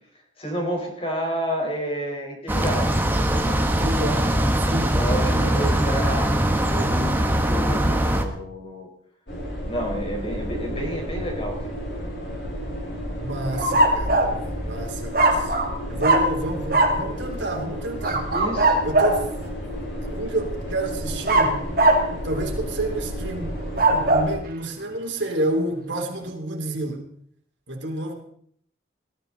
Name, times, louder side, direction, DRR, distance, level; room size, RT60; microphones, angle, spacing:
voice 1, 0.4-3.4 4.9-8.9 9.7-11.8 18.2-18.9, equal, 30° left, 1 dB, 4.6 m, -30 dB
sound 1, 2.5-8.2, right 1 dB, 10° right, 1.3 m, -21 dB
voice 2, 3.6-5.7 13.2-14.2 14.6-15.6 15.9-18.3 18.8-19.3 19.6-19.7 20.1-21.6 22.2-23.5 23.9-27.0 27.7-28.1, right 1 dB, 75° right, 1 dB, 3.5 m, -29 dB
sound 2, 9.3-24.4, equal, 70° left, 7.8 m, -32 dB
sound 3, 13.6-14.4 15.1-15.7 16.0-16.3 16.7-17.0 18.0-19.2 21.3-22.1 23.6-24.3, right 2 dB, 50° right, 2.4 m, -19 dB
21.0 x 13.5 x 4.1 m, 0.64 s
head